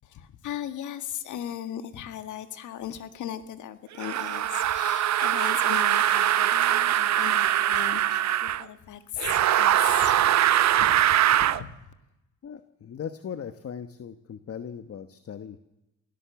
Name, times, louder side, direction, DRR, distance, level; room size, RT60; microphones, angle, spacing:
voice 1, 0.0-11.1 11.4-11.7, left 10 dB, 80° left, 10 dB, 1.8 m, -38 dB
sound 1, 4.0-8.6 9.2-11.6, right 12 dB, 65° right, 0.8 m, -22 dB
voice 2, 12.4-15.6, left 8 dB, 50° left, 10 dB, 1.2 m, -38 dB
23.5 x 17.0 x 7.1 m, 0.95 s
cardioid pair, 90°, 30 cm